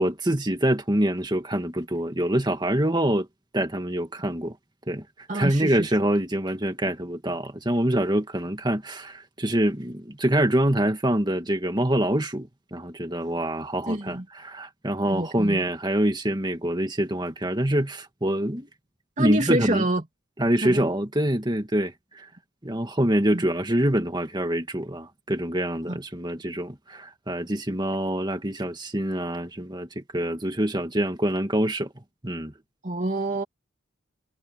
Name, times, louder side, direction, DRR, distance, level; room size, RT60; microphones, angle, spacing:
voice 1, 0.0-3.3 3.5-4.6 4.9-18.7 19.2-19.9 20.4-22.3 22.6-31.9 32.2-32.5, right 1 dB, 20° right, 2.1 m, -25 dB
voice 2, 5.3-5.9 13.9-14.2 15.1-15.6 19.2-20.0 20.6-20.8 23.3-23.4 25.9-26.0 32.8-33.4, right 1 dB, 35° right, 2.9 m, -26 dB
head